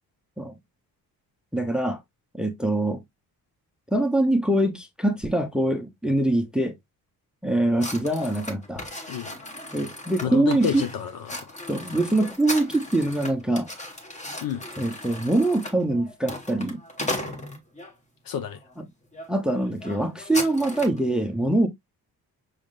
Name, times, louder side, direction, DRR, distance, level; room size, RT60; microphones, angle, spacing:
voice 1, 1.5-2.0 2.3-3.0 3.9-6.8 7.4-8.9 9.7-10.8 11.7-13.7 14.8-16.8 19.3-21.7, right 1 dB, ahead, 0.6 m, -24 dB
sound 1, 7.8-17.9 18.5-18.8 19.1-19.3 19.5-21.0, left 1 dB, 20° left, 1.2 m, -36 dB
voice 2, 10.2-11.5 14.4-14.6 18.3-18.6, left 8 dB, 65° left, 0.9 m, -29 dB
6.3 x 3.5 x 2.4 m
cardioid pair, 155°, 39 cm